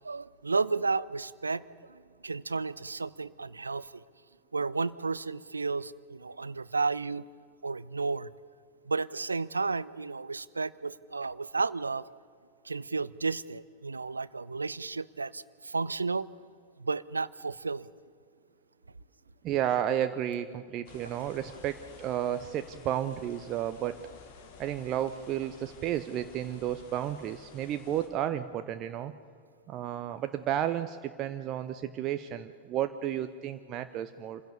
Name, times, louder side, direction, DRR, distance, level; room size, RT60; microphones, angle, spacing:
voice 1, 0.0-1.6 1.9-4.0 4.5-7.2 7.6-8.3 8.9-12.1 12.6-16.3 16.8-17.9, right 4 dB, 80° right, 20 dB, 0.5 m, -32 dB
voice 2, 19.4-24.0 24.6-29.1 29.7-34.4, right 11 dB, 35° right, 9 dB, 0.7 m, -32 dB
sound 1, 20.9-28.1, left 5 dB, 50° left, 2.9 m, -52 dB
27.0 x 16.0 x 6.9 m, 2.2 s
figure-of-eight pair, 90°, 0 cm